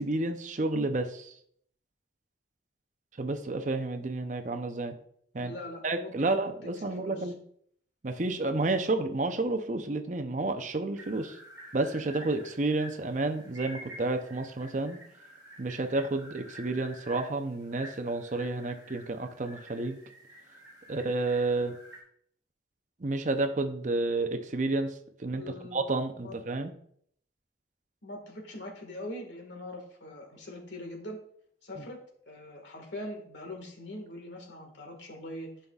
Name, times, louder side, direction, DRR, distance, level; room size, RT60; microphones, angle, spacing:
voice 1, 0.0-1.3 3.2-4.9 5.3-5.5 5.8-7.3 8.0-11.4 11.7-15.0 15.6-20.0 20.9-21.8 23.0-24.9 25.2-25.4 25.7-26.7, right 2 dB, 40° right, 7 dB, 0.6 m, -30 dB
voice 2, 5.4-6.4 6.6-7.3 25.3-25.8 26.2-26.4 28.0-31.2 31.6-35.5, left 1 dB, 80° left, 3 dB, 1.7 m, -42 dB
sound 1, 11.0-22.0, equal, 20° right, 3.1 m, -49 dB
11.0 x 5.6 x 2.4 m, 0.65 s
head